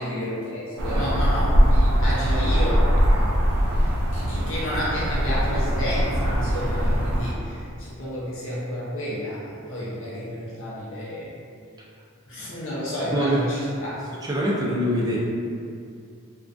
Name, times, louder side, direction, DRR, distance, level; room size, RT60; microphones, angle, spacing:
voice 1, 0.0-3.4 3.7-11.3 12.3-14.0, equal, 65° left, -8 dB, 0.6 m, -31 dB
sound 1, 0.8-7.3, equal, 85° right, 0.4 m, -21 dB
voice 2, 13.1-13.4 14.2-15.2, equal, 20° right, -5 dB, 0.3 m, -24 dB
2.4 x 2.2 x 2.5 m, 2.3 s
head